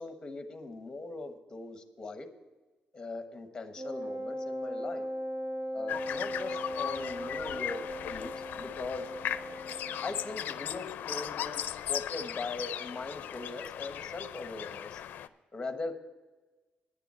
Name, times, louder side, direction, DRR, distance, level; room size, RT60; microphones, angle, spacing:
voice 1, 0.0-2.3 2.9-5.0 5.7-7.8 8.1-9.1 10.0-15.0 15.5-15.9, left 3 dB, 20° left, 7 dB, 1.1 m, -40 dB
Wind instrument woodwind instrument, 3.8-10.4, equal, 60° right, 1.4 m, -38 dB
sound 1, 5.9-15.3, left 10 dB, 70° left, 0.5 m, -37 dB
10.0 x 6.8 x 8.5 m, 1.2 s
cardioid pair, 160°, 3 cm